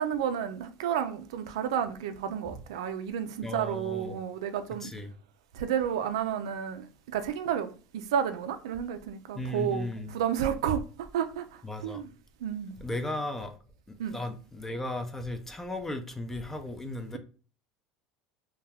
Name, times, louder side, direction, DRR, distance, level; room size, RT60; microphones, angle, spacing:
voice 1, 0.0-4.9 5.5-10.8 11.1-11.4 11.8-12.1 12.4-12.8 14.0-14.2, right 9 dB, 90° right, 0.3 m, -31 dB
voice 2, 3.4-4.2 4.8-5.1 9.3-10.2 11.6-12.0 12.8-13.5 14.1-17.2, left 1 dB, 10° left, 0.4 m, -35 dB
2.2 x 2.1 x 3.4 m
supercardioid pair, 105°, 3 cm